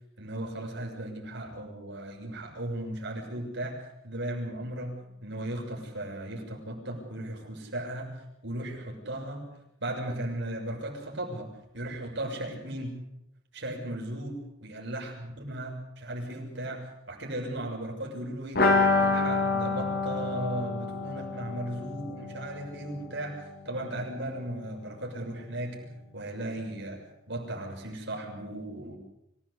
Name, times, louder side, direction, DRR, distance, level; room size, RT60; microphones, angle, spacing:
voice 1, 0.2-5.0 5.2-8.1 8.4-9.5 9.8-13.0 13.5-18.6 18.9-29.0, right 1 dB, 60° right, 0 dB, 6.7 m, -36 dB
sound 1, 18.5-24.2 24.4-24.5 24.8-24.9, left 3 dB, 50° left, 3.1 m, -28 dB
25.5 x 17.0 x 8.3 m, 0.82 s
head